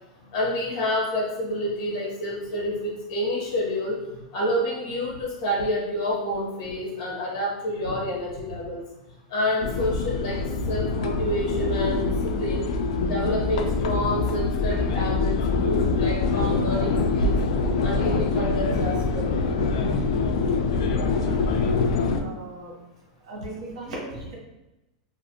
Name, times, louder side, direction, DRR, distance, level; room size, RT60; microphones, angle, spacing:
voice 1, 0.3-4.0 4.3-8.8 9.3-10.4 10.7-12.1 12.4-12.6 13.1-17.3 17.8-19.4, left 1 dB, 50° left, -2 dB, 0.9 m, -28 dB
sound 1, 9.6-22.2, left 4 dB, 70° left, 0.3 m, -24 dB
voice 2, 21.1-21.7 22.2-22.7 23.3-24.4, right 2 dB, 80° right, -3 dB, 1.0 m, -37 dB
2.5 x 2.4 x 2.7 m, 0.95 s
supercardioid pair, 150°, 3 cm